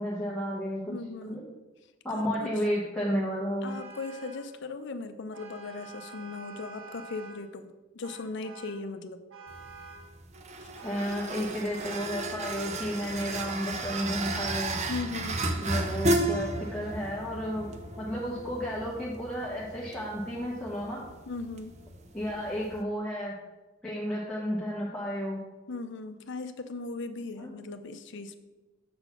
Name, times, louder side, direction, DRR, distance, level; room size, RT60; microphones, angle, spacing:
voice 1, 0.0-0.9 1.2-1.4 2.0-3.8 10.8-14.8 15.6-21.0 22.1-23.4 23.8-25.4 27.3-27.5, equal, 5° left, -7 dB, 1.0 m, -32 dB
voice 2, 0.9-1.5 2.1-2.5 3.6-9.2 14.9-15.5 21.3-21.8 25.7-28.4, left 3 dB, 60° left, 9 dB, 0.6 m, -38 dB
Vehicle horn car horn honking, 3.6-4.5 5.3-7.5 8.0-8.9 9.3-10.2 10.8-11.4, right 4 dB, 85° right, 1.0 m, -47 dB
sound 1, 9.5-22.8, right 1 dB, 35° right, 0.6 m, -34 dB
6.8 x 4.0 x 5.8 m, 1.1 s
head